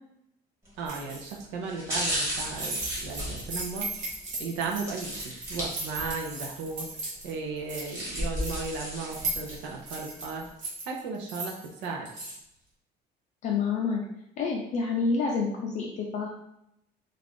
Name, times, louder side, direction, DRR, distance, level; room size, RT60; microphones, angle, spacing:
sound 1, 0.7-0.9 1.6-4.2 4.9-6.3 6.7-6.8 7.6-9.8 10.2-10.3, equal, 15° right, 1.3 m, -34 dB
sound 2, 0.8-1.3 2.4-7.3 7.6-8.7 9.1-12.4, right 2 dB, 40° right, 1.0 m, -37 dB
voice 1, 0.8-3.9 4.4-6.9 7.2-10.5 10.9-12.1, right 4 dB, 80° right, 0 dB, 0.6 m, -35 dB
voice 2, 13.4-14.0 14.4-16.3, left 4 dB, 40° left, -2 dB, 0.4 m, -28 dB
2.5 x 2.4 x 3.4 m, 0.81 s
cardioid pair, 155°, 18 cm